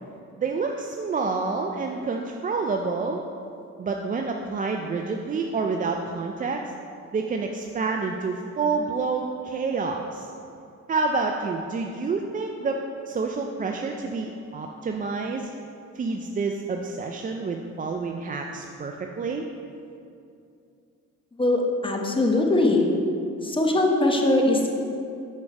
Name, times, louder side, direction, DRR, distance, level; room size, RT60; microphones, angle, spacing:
voice 1, 0.4-3.2 3.8-6.6 7.1-10.3 10.9-12.8 13.1-15.5 15.9-19.5, right 4 dB, 30° right, 2 dB, 0.4 m, -28 dB
voice 2, 21.4-22.9 23.4-24.7, left 2 dB, 15° left, 1 dB, 0.9 m, -21 dB
5.3 x 5.2 x 4.7 m, 2.5 s
cardioid pair, 90°, 30 cm